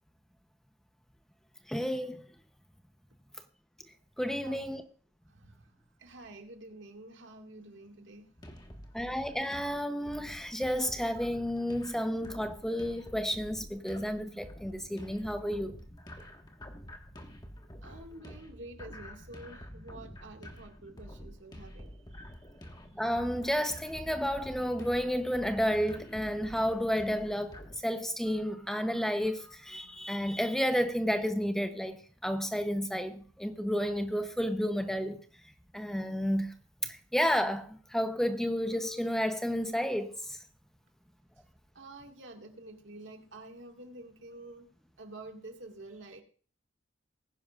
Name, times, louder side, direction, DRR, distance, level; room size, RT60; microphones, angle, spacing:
voice 1, 1.7-2.2 4.2-4.8 8.9-15.8 23.0-27.5 27.8-35.2 35.7-36.5 36.8-40.4, equal, ahead, 0.8 m, -31 dB
voice 2, 4.4-4.8 5.3-9.1 17.8-22.4 41.7-44.7 45.0-46.2, right 2 dB, 75° right, 2.0 m, -49 dB
sound 1, 8.4-27.8, equal, 20° left, 1.5 m, -48 dB
20.5 x 10.0 x 2.5 m
head